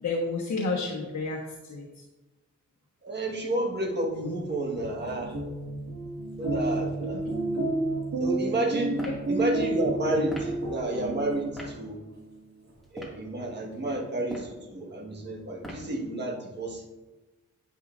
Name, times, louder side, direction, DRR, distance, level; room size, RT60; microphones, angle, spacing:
voice 1, 0.0-1.4 1.7-1.9 7.1-7.2, left 3 dB, 65° left, -3 dB, 1.3 m, -30 dB
voice 2, 3.0-5.4 6.4-7.3 8.2-12.0 12.9-16.9, right 1 dB, 35° right, 0 dB, 1.4 m, -31 dB
sound 1, 4.0-11.7, right 2 dB, 60° right, 2.0 m, -31 dB
sound 2, 8.9-9.2 10.3-10.5 11.6-11.7 12.8-13.2 14.2-14.6 15.6-15.9, equal, ahead, 2.0 m, -39 dB
9.8 x 9.2 x 2.5 m, 1.1 s
wide cardioid pair, 155°, 30 cm